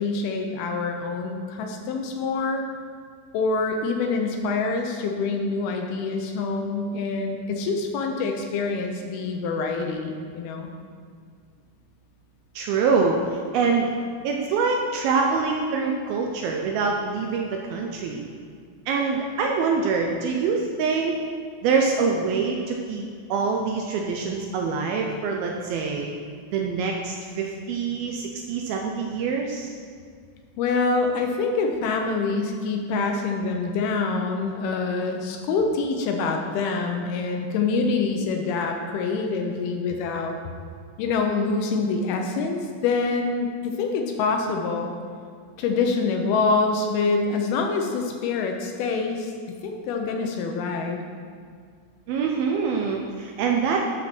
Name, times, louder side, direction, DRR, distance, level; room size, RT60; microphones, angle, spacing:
voice 1, 0.0-2.6 3.3-10.7 30.6-40.4 41.0-44.9 45.6-51.0, left 4 dB, 80° left, 3 dB, 2.5 m, -26 dB
voice 2, 12.6-13.9 14.2-18.2 18.9-21.2 21.6-23.0 23.3-26.1 26.5-29.8 52.1-53.8, right 5 dB, 80° right, 1 dB, 2.2 m, -25 dB
12.0 x 4.6 x 5.9 m, 2.1 s
omnidirectional pair, 4.8 m